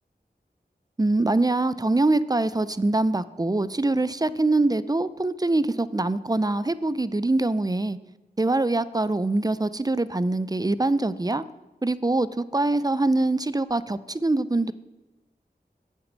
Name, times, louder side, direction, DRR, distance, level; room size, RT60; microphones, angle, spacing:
voice 1, 1.0-8.0 8.4-11.4 11.8-14.7, right 2 dB, 20° right, 0.5 m, -24 dB
8.9 x 6.5 x 7.3 m
wide cardioid pair, 40°, 17 cm